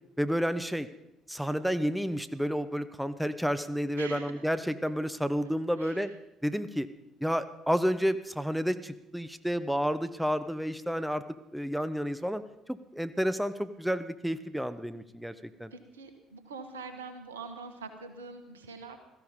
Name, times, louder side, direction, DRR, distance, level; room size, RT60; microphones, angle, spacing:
voice 1, 0.2-0.9 1.3-6.1 6.4-6.9 7.2-11.2 11.5-12.4 12.7-15.3 15.6-15.7, equal, ahead, 12 dB, 1.1 m, -30 dB
voice 2, 4.0-4.3 5.8-6.1 15.7-19.0, right 4 dB, 85° right, 8 dB, 1.5 m, -44 dB
17.0 x 14.5 x 5.3 m, 0.85 s
hypercardioid pair, 55°, 0 cm